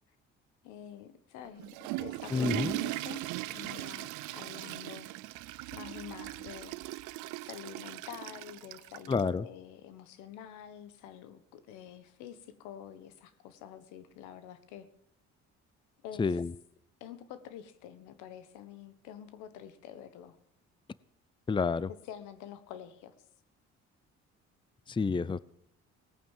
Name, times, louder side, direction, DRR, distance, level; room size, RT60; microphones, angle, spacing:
voice 1, 0.6-3.2 3.5-5.1 5.7-6.8 7.4-14.9 16.0-16.4 17.0-20.4 22.1-23.1, left 9 dB, 90° left, 12 dB, 1.5 m, -47 dB
Water / Toilet flush, 1.4-9.3, right 18 dB, 85° right, 0.7 m, -39 dB
voice 2, 2.3-2.8 9.1-9.5 16.2-16.5 21.5-21.9 24.9-25.4, left 4 dB, 15° left, 20 dB, 0.6 m, -29 dB
18.0 x 9.0 x 7.3 m, 0.75 s
supercardioid pair, 80°, 29 cm